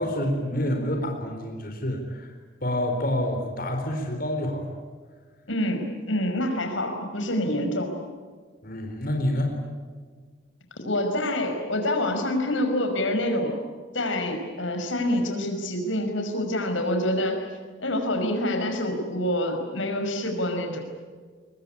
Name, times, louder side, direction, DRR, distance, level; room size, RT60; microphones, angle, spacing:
voice 1, 0.0-2.3 2.6-4.7 8.6-9.5, left 1 dB, 50° left, 3 dB, 4.2 m, -27 dB
voice 2, 5.5-7.9 10.8-13.5 13.9-17.5 17.8-20.8, left 1 dB, 85° left, 4 dB, 5.5 m, -26 dB
24.0 x 22.5 x 9.9 m, 1.5 s
head